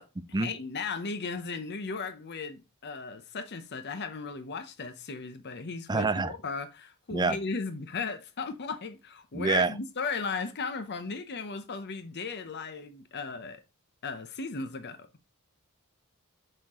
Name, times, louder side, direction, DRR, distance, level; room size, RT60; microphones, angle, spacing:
voice 1, 0.0-13.6 14.0-15.1, left 4 dB, 50° left, 0.7 m, -36 dB
voice 2, 5.9-6.3 7.1-7.4 9.3-9.7, right 4 dB, 20° right, 0.5 m, -26 dB
6.3 x 4.5 x 3.5 m
head